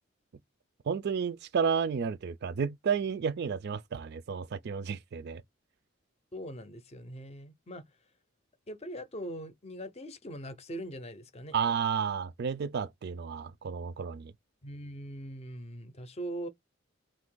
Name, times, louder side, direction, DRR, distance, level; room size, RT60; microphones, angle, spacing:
voice 1, 0.9-5.4 11.5-14.3, right 6 dB, 55° right, 0.4 m, -31 dB
voice 2, 6.3-7.8 8.7-11.5 14.6-16.5, right 1 dB, 35° left, 0.6 m, -41 dB
2.7 x 2.5 x 3.8 m
head